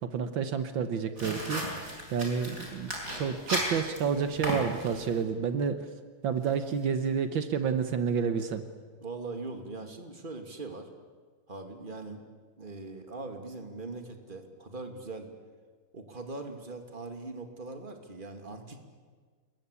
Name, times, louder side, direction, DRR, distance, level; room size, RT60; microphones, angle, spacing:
voice 1, 0.0-5.9 6.2-8.6, right 6 dB, 75° right, 9 dB, 2.0 m, -30 dB
sound 1, 1.2-5.2, equal, 45° right, 6.5 m, -35 dB
voice 2, 9.0-10.9 11.5-12.3 12.6-15.3 15.9-18.8, right 3 dB, 25° right, 5 dB, 2.6 m, -41 dB
28.5 x 22.0 x 8.5 m, 1.5 s
omnidirectional pair, 2.1 m